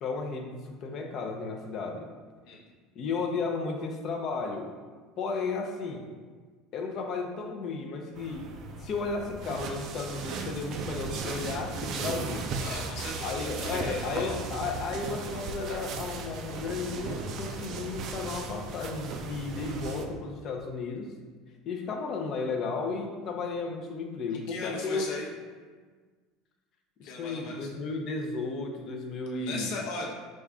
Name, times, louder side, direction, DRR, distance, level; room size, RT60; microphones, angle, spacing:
voice 1, 0.0-2.1 2.9-4.7 5.2-6.1 6.7-8.4 8.8-12.5 13.2-21.1 21.6-25.1 27.0-29.7, left 4 dB, 45° left, 3 dB, 0.6 m, -34 dB
sound 1, 8.2-20.1, right 4 dB, 50° right, 0.4 m, -36 dB
voice 2, 12.6-14.3 24.3-25.3 27.0-27.7 29.4-30.1, left 3 dB, 70° left, -2 dB, 0.9 m, -38 dB
5.2 x 2.4 x 3.5 m, 1.5 s
supercardioid pair, 130°, 0 cm